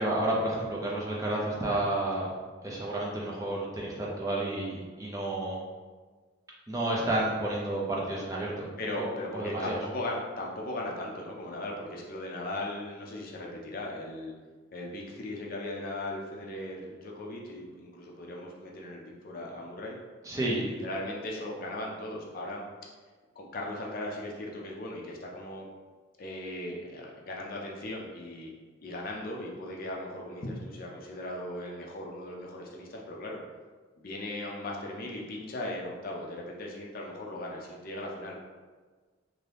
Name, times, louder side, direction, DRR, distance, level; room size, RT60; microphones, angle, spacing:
voice 1, 0.0-2.3 2.6-5.6 6.7-8.7 8.9-9.1 9.3-9.8 20.3-20.7, right 1 dB, 15° right, -4 dB, 0.5 m, -30 dB
voice 2, 8.8-14.3 14.7-20.0 20.6-22.6 23.4-25.6 26.2-28.5 28.8-33.4 34.0-38.4, left 1 dB, 45° left, -1 dB, 0.4 m, -38 dB
2.7 x 2.6 x 3.3 m, 1.4 s
head